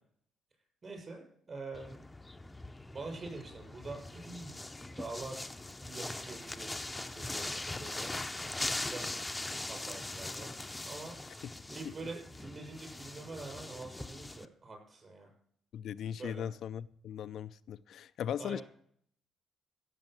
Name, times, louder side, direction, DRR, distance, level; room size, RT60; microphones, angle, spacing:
voice 1, 0.8-2.1 2.9-4.6 4.8-5.5 5.8-8.1 8.9-10.5 10.9-11.2 11.7-15.3 16.1-16.5 18.4-18.6, right 3 dB, 40° right, 6.3 m, -45 dB
sound 1, 1.7-14.4, left 2 dB, 15° left, 0.7 m, -41 dB
voice 2, 15.7-18.6, left 9 dB, 70° left, 0.4 m, -38 dB
16.0 x 7.3 x 6.1 m
cardioid pair, 80°, 0 cm